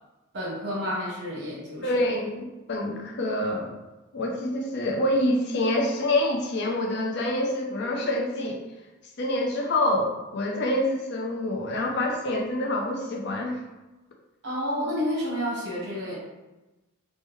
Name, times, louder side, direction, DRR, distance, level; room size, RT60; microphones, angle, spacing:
voice 1, 0.3-2.2 14.4-16.1, equal, 55° right, -6 dB, 1.0 m, -30 dB
voice 2, 1.8-3.7 4.1-8.6 9.2-13.6, left 1 dB, 55° left, 0 dB, 0.5 m, -26 dB
3.4 x 2.1 x 3.1 m, 1.1 s
head